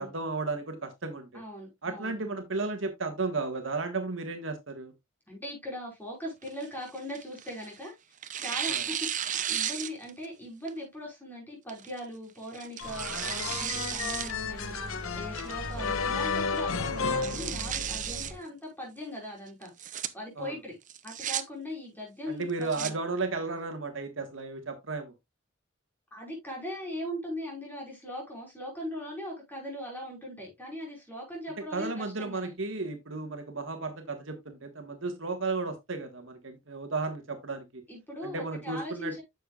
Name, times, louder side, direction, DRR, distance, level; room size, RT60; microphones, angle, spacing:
voice 1, 0.0-1.4 1.8-4.9 8.7-8.8 15.8-15.9 20.4-20.5 22.3-25.1 31.7-37.8 38.2-39.2, right 3 dB, 65° right, 1.6 m, -34 dB
voice 2, 1.3-2.1 5.3-7.9 8.4-20.8 21.0-23.0 26.1-32.5 37.9-39.2, equal, 10° left, 5.1 m, -40 dB
Tearing, 6.4-7.8 8.2-10.3 10.7-10.8 11.7-12.0 12.5-14.3 14.7-14.8 15.4-15.8 16.2-16.3 16.5-16.6 17.0-18.3 19.6-20.1 20.9-21.4 22.4-22.9, right 10 dB, 40° right, 0.7 m, -34 dB
sound 1, 12.8-18.2, left 5 dB, 85° left, 1.0 m, -33 dB
sound 2, 12.8-18.4, right 1 dB, 15° right, 6.3 m, -42 dB
9.9 x 7.0 x 2.4 m
head